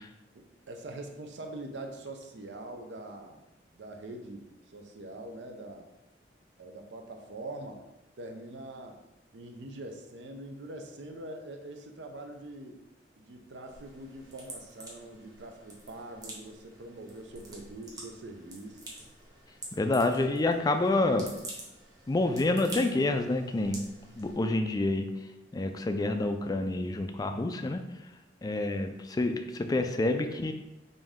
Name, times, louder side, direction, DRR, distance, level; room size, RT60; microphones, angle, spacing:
voice 1, 0.3-3.4 3.7-5.9 6.6-7.8 8.2-9.0 9.3-12.8 13.2-18.8, right 2 dB, 75° right, 4 dB, 0.6 m, -43 dB
sound 1, 13.6-24.4, right 1 dB, 20° right, 1.1 m, -47 dB
voice 2, 19.7-21.3 22.1-23.8 24.1-25.1 25.5-27.8 28.4-30.5, left 2 dB, 20° left, 7 dB, 0.3 m, -28 dB
5.2 x 2.7 x 3.6 m, 0.95 s
head